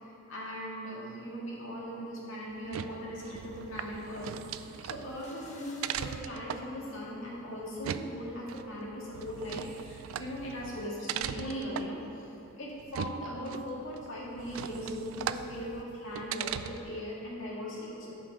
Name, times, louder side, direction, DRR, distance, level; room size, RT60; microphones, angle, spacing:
voice 1, 0.3-12.3 12.6-18.1, equal, 65° left, -5 dB, 2.2 m, -39 dB
sound 1, 2.5-17.0, right 8 dB, 75° right, 0.3 m, -40 dB
sound 2, 5.0-6.2, left 2 dB, 35° left, 1.0 m, -54 dB
11.0 x 5.4 x 4.9 m, 2.7 s
head